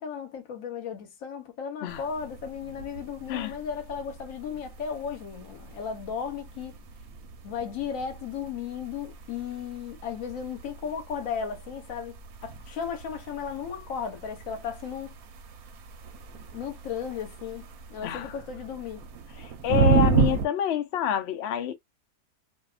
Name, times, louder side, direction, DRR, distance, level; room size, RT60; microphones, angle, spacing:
voice 1, 0.0-6.8 7.4-15.1 16.5-19.1, left 7 dB, 60° left, 1.0 m, -35 dB
sound 1, 1.9-20.5, right 5 dB, 75° right, 1.0 m, -32 dB
voice 2, 18.0-18.3 19.6-21.7, left 10 dB, 85° left, 0.5 m, -27 dB
2.7 x 2.2 x 2.3 m
omnidirectional pair, 1.7 m